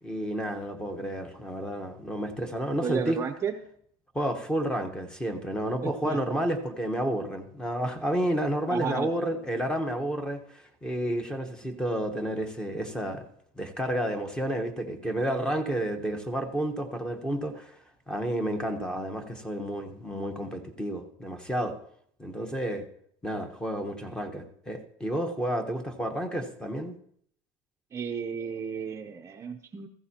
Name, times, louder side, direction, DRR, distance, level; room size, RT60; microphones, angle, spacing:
voice 1, 0.0-3.2 4.1-13.3 13.6-17.8 18.1-21.8 22.2-22.9 23.2-26.9, equal, 5° left, 7 dB, 1.0 m, -31 dB
voice 2, 2.8-3.5 5.8-6.2 8.7-9.1 27.9-29.9, right 7 dB, 25° right, 5 dB, 0.6 m, -33 dB
15.5 x 14.5 x 2.9 m, 0.66 s
cardioid pair, 150°, 12 cm